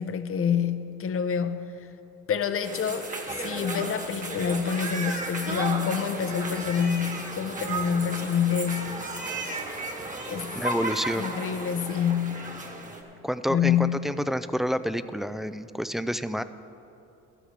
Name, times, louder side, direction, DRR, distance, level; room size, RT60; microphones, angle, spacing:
voice 1, 0.0-1.7 2.3-3.1 3.4-9.0 10.3-10.6 11.2-12.5 13.5-14.2, left 8 dB, 45° left, 10 dB, 0.7 m, -27 dB
sound 1, 2.6-13.0, right 2 dB, 25° right, 1.5 m, -34 dB
voice 2, 10.6-11.3 13.2-16.4, equal, ahead, 12 dB, 0.3 m, -28 dB
14.0 x 12.5 x 3.3 m, 2.8 s
cardioid pair, 90°, 30 cm